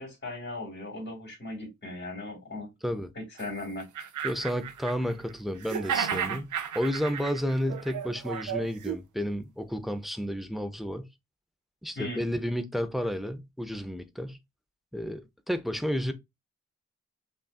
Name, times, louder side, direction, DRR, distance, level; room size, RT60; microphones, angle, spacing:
voice 1, 0.0-2.7 3.1-3.9 12.0-12.2, left 2 dB, 40° left, 2.4 m, -38 dB
sound 1, 3.4-3.5 3.8-5.3 5.6-9.0, right 8 dB, 75° right, 0.5 m, -33 dB
voice 2, 4.2-11.1 11.8-14.4 14.9-16.1, equal, ahead, 0.6 m, -31 dB
5.4 x 2.5 x 2.3 m
cardioid pair, 45°, 30 cm